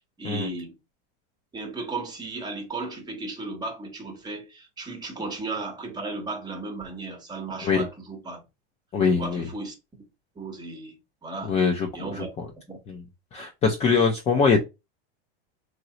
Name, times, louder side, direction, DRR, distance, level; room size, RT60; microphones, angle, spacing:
voice 1, 0.2-0.8 1.5-8.4 9.1-10.0 10.4-11.6 11.9-12.3 12.7-12.8 13.4-13.5, right 3 dB, 15° right, 0.9 m, -35 dB
voice 2, 8.9-9.5 11.5-12.5 12.9-13.0 13.3-14.6, left 5 dB, 20° left, 0.4 m, -23 dB
3.0 x 2.0 x 3.7 m
supercardioid pair, 135°, 32 cm